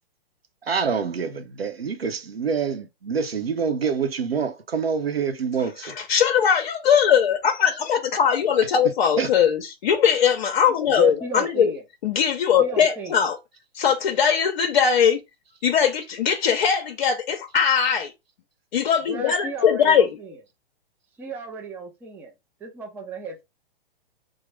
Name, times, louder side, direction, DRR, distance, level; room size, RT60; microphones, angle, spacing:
voice 1, 0.7-6.0 9.2-9.3, right 6 dB, 90° right, 0.8 m, -26 dB
voice 2, 5.8-11.7 12.0-13.4 13.7-15.2 15.6-18.1 18.7-20.1, left 7 dB, 55° left, 0.6 m, -20 dB
voice 3, 10.9-11.8 12.6-13.2 19.1-20.4 21.2-22.3 22.6-23.4, right 5 dB, 5° right, 0.4 m, -34 dB
3.8 x 2.1 x 3.2 m
hypercardioid pair, 120°, 29 cm